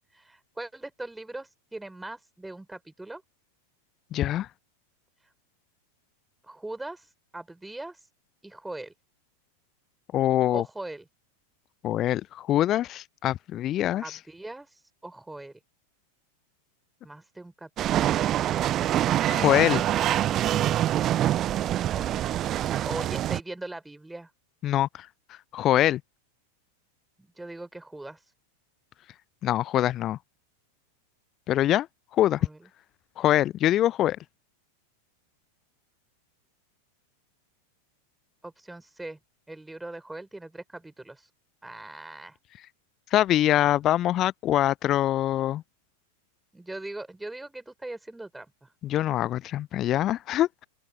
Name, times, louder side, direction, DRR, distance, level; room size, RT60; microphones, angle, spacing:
voice 1, 0.1-3.2 6.4-8.0 8.4-8.9 10.5-11.1 14.0-15.6 17.0-18.2 21.8-22.2 22.7-24.3 27.2-28.2 32.4-32.7 38.4-39.2 39.5-41.3 41.6-42.4 46.5-48.7, right 2 dB, 5° right, 5.6 m, -40 dB
voice 2, 4.1-4.5 10.1-10.6 11.8-14.2 19.3-19.8 24.6-25.1 25.5-26.0 29.4-30.2 31.5-31.9 32.1-32.5 33.2-34.2 43.1-45.6 48.8-50.7, left 13 dB, 30° left, 0.4 m, -24 dB
sound 1, 17.8-23.4, right 12 dB, 30° right, 0.5 m, -25 dB
open air
figure-of-eight pair, 90°, 0 cm